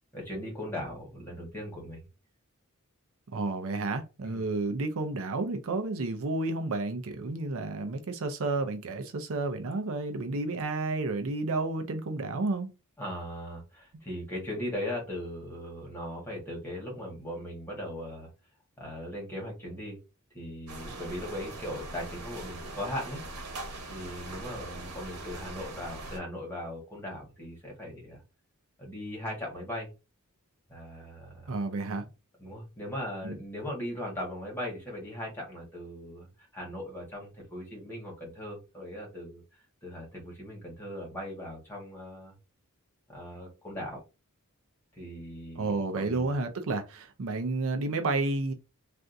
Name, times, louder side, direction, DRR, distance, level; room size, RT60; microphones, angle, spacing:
voice 1, 0.1-2.0 4.2-4.4 13.0-18.3 18.8-20.0 20.3-23.2 23.9-28.2 28.8-29.9 30.7-31.5 32.4-42.3 43.1-44.0 44.9-46.3, left 1 dB, 10° left, 1.6 m, -39 dB
voice 2, 3.3-12.7 31.5-32.0 33.2-33.3 45.6-48.5, right 3 dB, 65° right, 0.6 m, -31 dB
sound 1, 20.7-26.2, right 2 dB, 85° right, 1.1 m, -41 dB
3.4 x 2.5 x 2.6 m
head